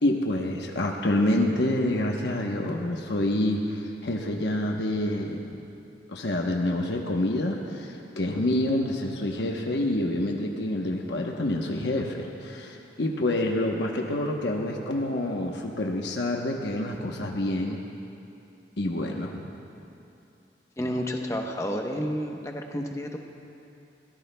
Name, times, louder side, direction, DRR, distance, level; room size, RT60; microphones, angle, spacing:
voice 1, 0.0-5.6 6.1-17.8 18.8-19.5, left 1 dB, 75° left, 1 dB, 1.0 m, -27 dB
voice 2, 20.8-23.2, equal, 15° left, 2 dB, 0.9 m, -30 dB
22.5 x 17.5 x 2.3 m, 2.7 s
head